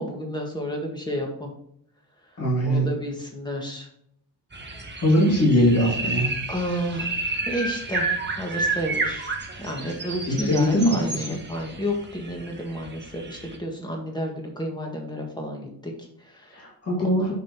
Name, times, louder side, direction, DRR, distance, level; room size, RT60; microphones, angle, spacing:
voice 1, 0.0-1.5 2.2-3.9 6.5-7.1 7.5-8.1 8.4-9.3 9.6-16.7 17.0-17.3, equal, 10° left, 0 dB, 1.6 m, -31 dB
voice 2, 2.4-2.9 5.0-6.3 10.3-11.4 16.5-17.3, equal, 40° left, -5 dB, 2.2 m, -21 dB
sound 1, 4.5-13.6, right 3 dB, 25° right, 1.2 m, -31 dB
7.2 x 6.5 x 2.9 m, 0.71 s
wide cardioid pair, 170°, 39 cm